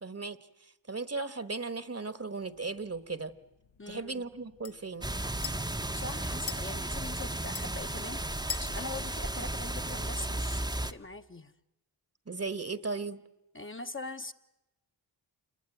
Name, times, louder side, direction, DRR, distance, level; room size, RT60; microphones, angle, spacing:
voice 1, 0.0-3.3 3.9-5.1 12.3-13.2, right 3 dB, 35° right, 15 dB, 1.3 m, -37 dB
sound 1, 2.4-10.2, left 6 dB, 75° left, 1.3 m, -47 dB
voice 2, 3.8-4.2 5.9-8.2 8.5-11.5 13.5-14.3, left 3 dB, 25° left, 6 dB, 1.1 m, -42 dB
sound 2, 5.0-10.9, right 1 dB, 10° right, 1.0 m, -34 dB
27.5 x 21.5 x 9.1 m, 0.94 s
cardioid pair, 65°, 45 cm